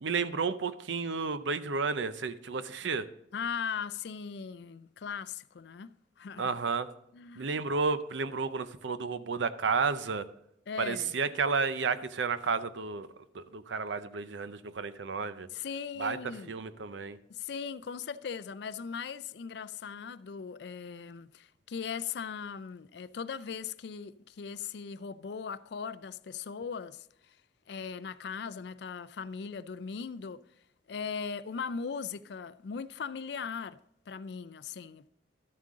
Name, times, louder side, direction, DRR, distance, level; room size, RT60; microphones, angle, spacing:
voice 1, 0.0-3.1 6.4-6.9 7.4-10.3 10.8-13.1 13.3-15.5 16.0-16.2 16.5-17.2, right 4 dB, 80° right, 0.6 m, -32 dB
voice 2, 3.3-6.5 7.1-7.5 10.7-11.1 15.5-16.6 17.3-27.4 27.7-30.4 30.9-33.8 34.1-35.1, left 6 dB, 60° left, 0.4 m, -39 dB
12.5 x 7.5 x 3.7 m
head